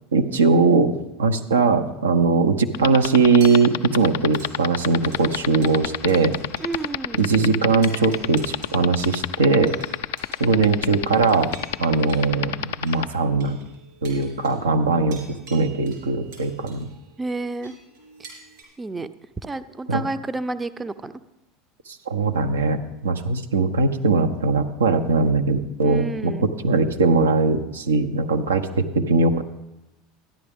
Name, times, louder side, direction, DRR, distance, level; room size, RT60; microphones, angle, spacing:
voice 1, 0.1-6.3 7.1-9.7 10.4-11.5 11.8-13.6 14.0-16.9 19.9-20.0 22.1-29.4, right 4 dB, 85° right, 6 dB, 0.7 m, -20 dB
sound 1, 2.7-13.0, left 12 dB, 70° left, 0.3 m, -25 dB
sound 2, 3.3-6.9 7.2-7.3 7.7-18.6, right 4 dB, 65° right, 3.8 m, -47 dB
voice 2, 6.6-7.2 17.2-17.7 18.8-19.1 19.4-21.1 25.8-26.5, right 2 dB, 20° right, 12 dB, 0.5 m, -30 dB
13.0 x 10.0 x 3.6 m, 0.93 s
hypercardioid pair, 80°, 0 cm